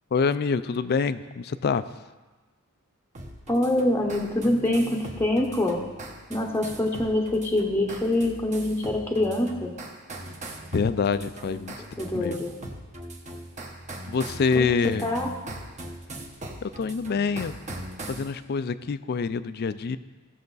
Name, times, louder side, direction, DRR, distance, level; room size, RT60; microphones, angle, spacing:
voice 1, 0.1-1.8 10.7-11.7 12.1-12.4 14.1-15.1 16.6-17.5 18.1-20.0, left 5 dB, 45° left, 14 dB, 0.4 m, -26 dB
sound 1, 3.1-18.3, right 1 dB, 35° right, 1.0 m, -40 dB
voice 2, 3.5-5.8 6.3-9.7 12.0-12.5 14.5-14.7 15.0-15.3, left 1 dB, 10° left, 0 dB, 0.8 m, -25 dB
16.0 x 6.6 x 4.0 m, 1.3 s
head